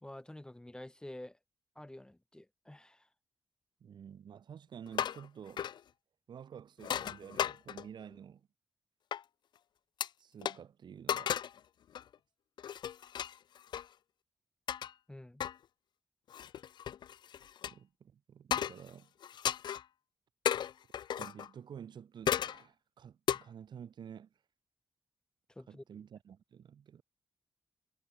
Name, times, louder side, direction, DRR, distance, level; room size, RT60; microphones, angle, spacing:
voice 1, 0.0-1.4 1.7-3.1 15.1-15.4 25.5-25.8, left 1 dB, 10° left, 1.3 m, -49 dB
voice 2, 3.8-5.7 6.3-8.5 10.2-11.4 17.7-19.1 21.2-24.3 25.7-27.0, right 8 dB, 80° right, 2.9 m, -50 dB
sound 1, 4.9-5.3 5.6-5.8 6.8-8.0 9.1-9.2 10.0-10.1 10.4-10.6 11.1-11.6 11.9-12.1 12.6-13.9 14.7-14.9 15.4-15.6 16.3-17.7 18.5-18.9 19.2-19.8 20.5-21.5 22.3-22.6 23.3-23.4, left 9 dB, 80° left, 0.4 m, -34 dB
cardioid pair, 95°, 8 cm